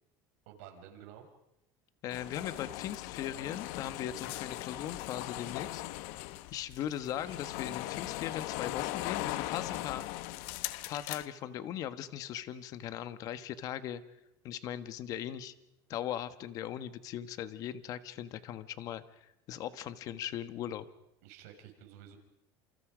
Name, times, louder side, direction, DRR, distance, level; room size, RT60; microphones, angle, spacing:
voice 1, 0.5-1.3 21.2-22.2, right 9 dB, 85° right, 3 dB, 5.6 m, -51 dB
voice 2, 2.0-5.8 6.5-10.3 10.9-14.0 14.4-15.5 15.9-20.8, left 11 dB, 50° left, 11 dB, 1.5 m, -39 dB
sound 1, 2.1-11.3, left 16 dB, 70° left, 1.1 m, -39 dB
28.5 x 28.0 x 5.2 m, 0.87 s
cardioid pair, 140°, 8 cm